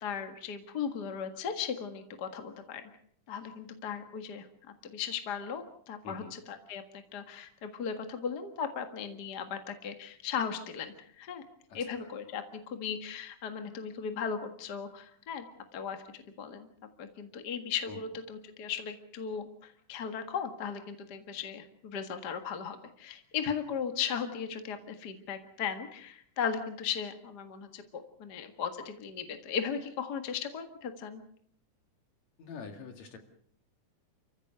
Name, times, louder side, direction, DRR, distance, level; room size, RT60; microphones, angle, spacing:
voice 1, 0.0-2.8 3.3-4.5 4.8-11.4 11.7-15.5 15.7-16.0 16.4-16.7 17.0-31.2, left 7 dB, 40° left, 7 dB, 1.9 m, -37 dB
voice 2, 11.7-12.1 17.9-18.0 32.4-33.2, left 5 dB, 65° left, 6 dB, 3.3 m, -45 dB
29.0 x 15.5 x 6.7 m, 0.62 s
omnidirectional pair, 3.5 m